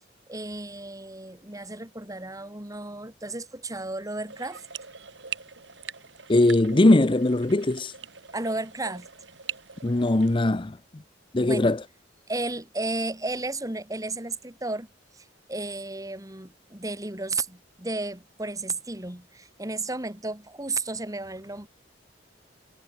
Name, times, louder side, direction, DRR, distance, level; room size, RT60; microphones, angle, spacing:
voice 1, 0.3-4.6 8.3-9.1 11.4-11.8 12.3-14.9 15.2-21.7, right 2 dB, 20° right, 2.5 m, -33 dB
sound 1, 4.3-10.4, right 8 dB, 70° right, 4.2 m, -42 dB
voice 2, 6.3-7.9 9.8-10.8 11.3-11.8, left 2 dB, 25° left, 0.7 m, -20 dB
head